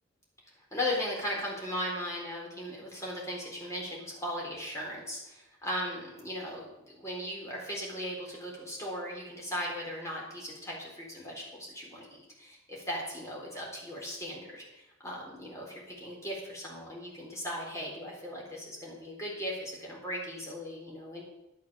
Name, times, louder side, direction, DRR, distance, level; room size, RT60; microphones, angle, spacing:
voice 1, 0.7-21.2, equal, 15° left, -3 dB, 4.0 m, -37 dB
11.5 x 8.7 x 7.0 m, 0.90 s
head